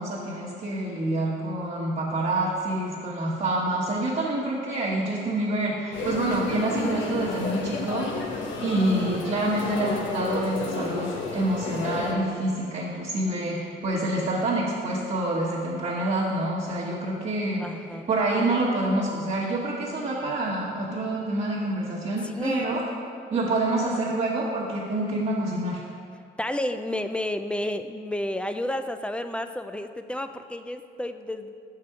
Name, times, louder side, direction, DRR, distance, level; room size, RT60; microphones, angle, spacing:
voice 1, 0.0-8.1 8.6-17.7 18.1-22.8 23.3-25.8, right 1 dB, 40° right, -8 dB, 1.2 m, -27 dB
sound 1, 5.9-12.1, left 3 dB, 75° left, 0.9 m, -31 dB
voice 2, 17.6-18.1 22.2-22.8 23.3-23.5 26.4-31.5, left 1 dB, 5° left, 9 dB, 0.3 m, -31 dB
5.9 x 4.9 x 5.7 m, 2.3 s
cardioid pair, 90°, 20 cm